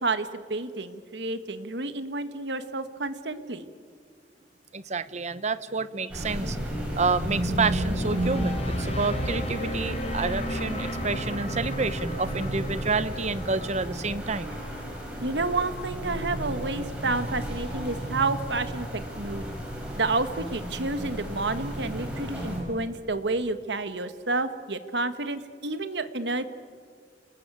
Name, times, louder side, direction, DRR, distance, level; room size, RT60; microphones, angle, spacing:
voice 1, 0.0-3.6 15.2-19.5 20.0-26.4, right 3 dB, 75° right, 11 dB, 1.6 m, -30 dB
voice 2, 4.7-6.6 6.9-14.5, right 4 dB, 40° right, 14 dB, 1.0 m, -29 dB
sound 1, 6.1-22.6, right 1 dB, 5° right, 7.9 m, -33 dB
sound 2, 6.6-15.6, left 1 dB, 35° left, 4.3 m, -34 dB
30.0 x 19.5 x 9.1 m, 2.1 s
head